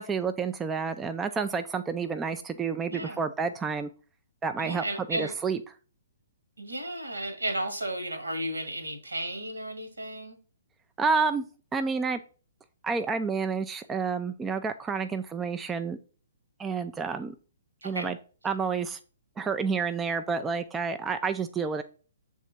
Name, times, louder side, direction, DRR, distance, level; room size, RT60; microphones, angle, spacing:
voice 1, 0.0-3.9 4.4-5.6 11.0-11.4 11.7-12.2 12.8-16.0 16.6-17.3 17.8-18.2 18.4-19.0 19.4-21.8, right 5 dB, 15° right, 8 dB, 0.4 m, -29 dB
voice 2, 4.6-5.3 6.6-10.4 17.8-18.1, right 1 dB, 80° right, 6 dB, 1.6 m, -34 dB
7.2 x 3.5 x 4.2 m, 0.38 s
figure-of-eight pair, 125°, 0 cm